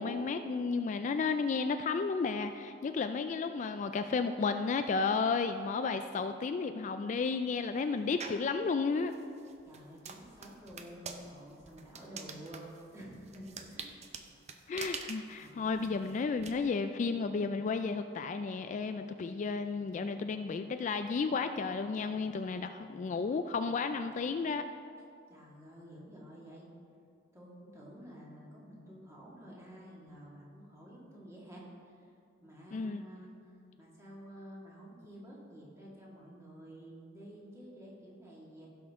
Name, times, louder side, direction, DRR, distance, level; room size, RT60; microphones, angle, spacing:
voice 1, 0.0-9.1 14.7-24.6 32.7-33.0, left 4 dB, 40° left, 8 dB, 0.3 m, -33 dB
sound 1, 8.2-8.5 9.1-16.5, right 5 dB, 35° right, 0.6 m, -46 dB
voice 2, 9.6-12.6 12.9-14.0 15.3-15.9 25.3-26.7 27.3-32.1 32.4-33.5 33.8-38.7, equal, 15° right, -5 dB, 2.0 m, -51 dB
16.0 x 6.2 x 3.6 m, 2.4 s
head